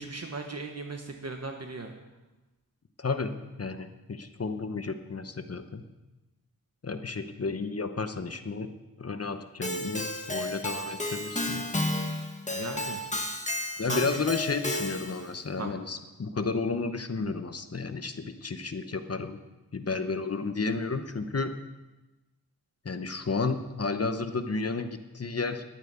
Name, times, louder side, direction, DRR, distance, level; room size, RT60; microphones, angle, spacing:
voice 1, 0.0-2.0 12.5-13.0 13.8-14.2 15.6-15.7, right 3 dB, 45° right, 3 dB, 1.2 m, -37 dB
voice 2, 3.0-5.8 6.8-8.7 9.0-11.6 13.8-19.4 19.7-21.5 22.8-25.6, left 4 dB, 45° left, 8 dB, 0.9 m, -32 dB
Keyboard (musical), 9.6-15.3, left 1 dB, 20° left, 1.4 m, -32 dB
11.5 x 8.9 x 8.1 m, 1.1 s
wide cardioid pair, 100°, 35 cm